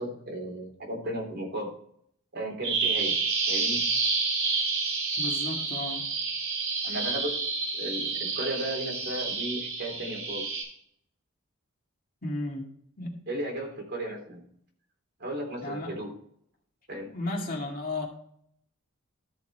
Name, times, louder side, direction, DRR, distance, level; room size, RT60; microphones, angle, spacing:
voice 1, 0.0-1.7 2.3-3.2 3.5-3.9 6.8-7.5 7.8-10.5 13.3-14.4 15.2-16.2 16.9-17.1, right 1 dB, 55° right, -1 dB, 3.6 m, -35 dB
Bird vocalization bird call bird song, 2.6-10.6, right 4 dB, 90° right, 4.6 m, -29 dB
voice 2, 5.2-6.0 12.2-12.6 13.0-13.2 15.6-16.0 17.1-18.1, left 2 dB, 45° left, 0 dB, 2.3 m, -33 dB
13.5 x 5.8 x 4.3 m, 0.64 s
head